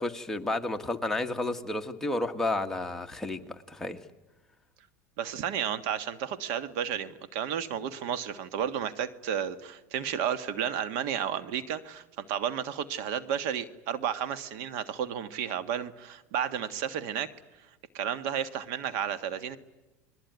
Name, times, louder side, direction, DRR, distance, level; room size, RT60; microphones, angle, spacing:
voice 1, 0.0-4.0, left 2 dB, 5° left, 3 dB, 1.6 m, -31 dB
voice 2, 5.2-17.3 17.9-19.6, right 9 dB, 70° right, 12 dB, 1.6 m, -32 dB
29.0 x 21.0 x 9.5 m, 1.1 s
supercardioid pair, 120°, 8 cm